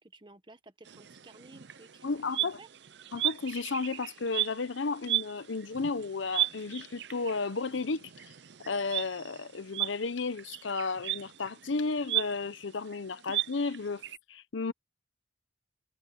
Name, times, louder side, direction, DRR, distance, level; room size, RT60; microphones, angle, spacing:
voice 1, 0.0-2.7, right 2 dB, 25° right, 1.4 m, -54 dB
sound 1, 0.8-14.2, right 14 dB, 65° right, 0.7 m, -36 dB
voice 2, 2.0-2.6 3.1-8.1 8.6-14.0 14.3-14.7, left 4 dB, 85° left, 0.7 m, -33 dB
head